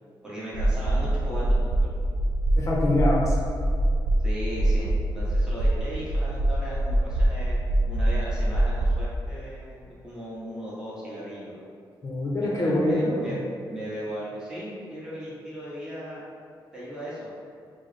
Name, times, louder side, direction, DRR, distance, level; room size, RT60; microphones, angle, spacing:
voice 1, 0.2-1.9 4.2-4.9 5.1-7.6 7.9-11.6 12.4-13.4 13.6-16.2 16.7-17.3, equal, 10° right, -9 dB, 1.0 m, -37 dB
sound 1, 0.5-9.0, right 1 dB, 70° right, 0.4 m, -24 dB
voice 2, 2.6-3.3 12.0-13.4, left 1 dB, 35° left, -3 dB, 0.7 m, -24 dB
4.4 x 2.1 x 3.2 m, 2.3 s
wide cardioid pair, 135°, 9 cm